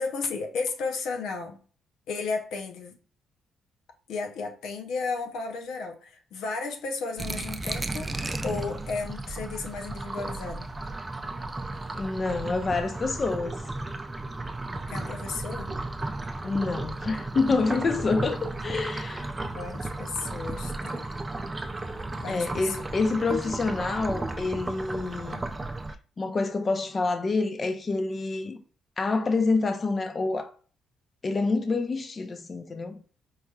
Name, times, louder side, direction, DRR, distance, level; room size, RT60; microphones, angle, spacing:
voice 1, 0.0-1.6 2.1-3.0 4.1-8.1 8.4-10.7 14.9-15.8 19.5-21.1 22.2-23.1, left 4 dB, 85° left, 0.6 m, -34 dB
sound 1, 7.2-25.9, right 2 dB, 20° right, 0.4 m, -34 dB
voice 2, 11.9-13.6 16.4-19.3 22.3-25.4 26.2-28.6 29.0-30.5 31.2-33.0, left 3 dB, 35° left, 0.6 m, -27 dB
4.6 x 3.0 x 2.3 m
cardioid pair, 90°, 0 cm